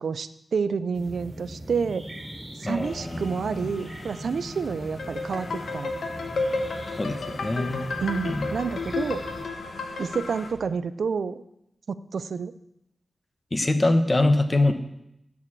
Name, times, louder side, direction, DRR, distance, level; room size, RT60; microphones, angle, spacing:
voice 1, 0.0-2.1 2.6-5.9 8.0-9.2 10.0-11.4 11.9-12.5, right 5 dB, 80° right, 14 dB, 0.5 m, -29 dB
sound 1, 0.9-9.5, equal, 30° right, 2.1 m, -41 dB
voice 2, 2.6-3.7 7.0-7.8 8.2-8.5 13.5-14.7, left 2 dB, 25° left, 8 dB, 1.0 m, -24 dB
sound 2, 2.8-10.5, left 2 dB, 65° left, 1.8 m, -44 dB
sound 3, 5.0-10.5, left 3 dB, 80° left, 1.0 m, -32 dB
11.0 x 4.9 x 7.3 m, 0.81 s
wide cardioid pair, 105°, 0 cm